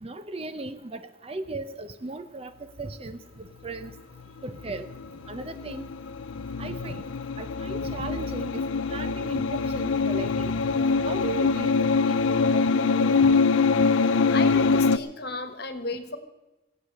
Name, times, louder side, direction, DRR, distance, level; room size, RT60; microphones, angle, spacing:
voice 1, 0.0-3.9 4.4-4.9 5.3-5.8 6.6-7.0 7.4-10.8 11.0-13.3, right 2 dB, 30° right, 11 dB, 0.6 m, -37 dB
sound 1, 4.6-15.0, left 4 dB, 90° left, 0.5 m, -24 dB
voice 2, 14.3-16.2, left 3 dB, 55° left, 9 dB, 1.4 m, -34 dB
19.5 x 8.1 x 6.6 m, 1.1 s
head